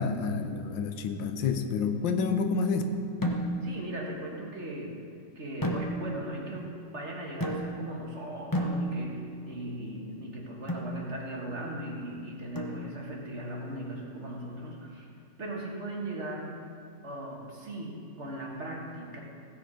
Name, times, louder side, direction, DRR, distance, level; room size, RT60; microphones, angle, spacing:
voice 1, 0.0-2.8, left 5 dB, 90° left, 7 dB, 1.5 m, -29 dB
sound 1, 3.2-3.8 5.6-6.3 7.4-8.0 8.5-9.3 10.7-11.0 12.5-13.2, equal, 20° left, 0.6 m, -32 dB
voice 2, 3.6-5.0 5.4-15.1 15.4-16.6 17.0-19.2, right 1 dB, 40° right, -2 dB, 1.8 m, -38 dB
16.5 x 7.0 x 5.0 m, 2.5 s
omnidirectional pair, 2.0 m